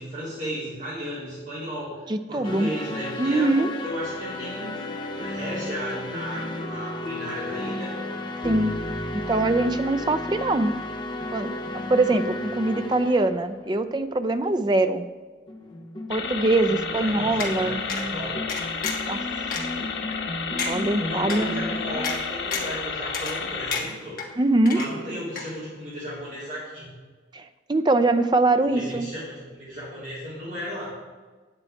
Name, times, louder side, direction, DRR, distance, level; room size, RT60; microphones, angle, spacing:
voice 1, 0.0-3.5 3.8-4.7 5.1-8.0 16.9-18.4 21.0-24.2 24.7-26.9 28.6-30.9, equal, 40° right, -8 dB, 3.3 m, -35 dB
voice 2, 2.1-2.7 3.2-3.7 8.4-8.8 9.1-10.7 11.3-15.1 16.1-17.8 19.1-19.2 20.6-21.6 24.4-24.8 27.3-29.1, right 2 dB, 25° right, 10 dB, 0.4 m, -23 dB
sound 1, 2.4-14.0 15.5-22.2, left 1 dB, 25° left, 0.7 m, -34 dB
sound 2, 16.1-23.8, left 5 dB, 75° left, 1.0 m, -32 dB
sound 3, 17.4-17.5 17.9-18.0 18.5-19.1 19.5-19.6 20.1-20.2 20.6-20.7 21.3-21.4 22.0-22.2 22.5-22.8 23.1-23.4 23.7-24.3 24.7-25.1 25.4-25.5, left 5 dB, 50° left, 1.4 m, -30 dB
9.0 x 8.8 x 4.5 m, 1.4 s
head